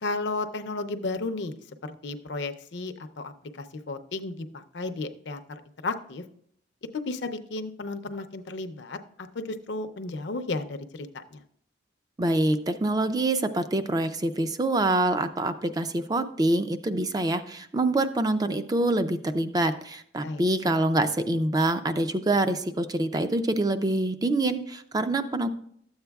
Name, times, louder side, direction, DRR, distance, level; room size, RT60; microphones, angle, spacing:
voice 1, 0.0-5.4 5.8-6.2 6.9-11.4 20.2-20.4, left 3 dB, 70° left, 8 dB, 0.5 m, -33 dB
voice 2, 12.2-25.5, right 2 dB, 20° right, 10 dB, 0.4 m, -25 dB
12.5 x 8.0 x 2.3 m, 0.66 s
head